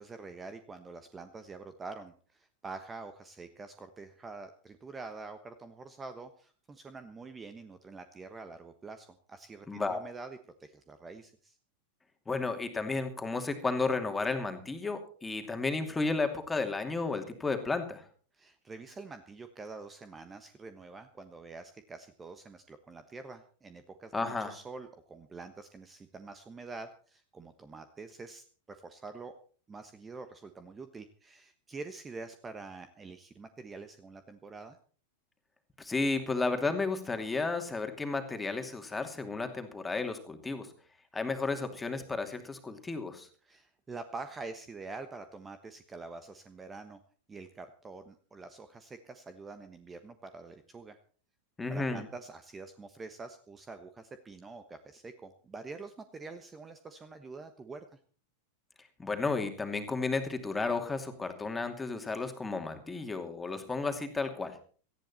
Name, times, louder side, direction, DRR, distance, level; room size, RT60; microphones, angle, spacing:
voice 1, 0.0-11.6 18.3-29.4 29.7-34.8 43.4-47.0 47.3-51.0 51.7-58.0, right 3 dB, 15° right, 10 dB, 1.2 m, -46 dB
voice 2, 9.7-10.0 12.3-18.1 24.1-24.5 35.8-40.7 41.1-43.3 51.6-52.0 59.0-64.6, left 3 dB, 10° left, 6 dB, 2.7 m, -33 dB
18.0 x 14.5 x 4.3 m, 0.42 s
figure-of-eight pair, 90°, 0 cm